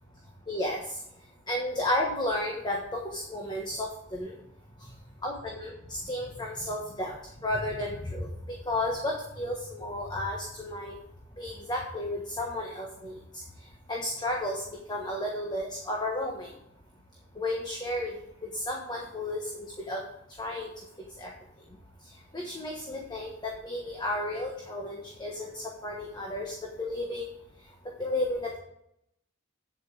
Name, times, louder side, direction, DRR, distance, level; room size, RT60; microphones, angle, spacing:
voice 1, 0.5-1.0 1.5-4.3 4.8-4.9 5.2-8.3 8.7-10.9 11.4-13.4 13.9-14.6 14.9-16.5 17.3-18.1 18.5-20.0 20.4-20.7 21.2-21.3 22.3-27.3 28.0-28.6, left 1 dB, 20° left, 0 dB, 1.3 m, -33 dB
8.5 x 7.4 x 4.8 m, 0.77 s
head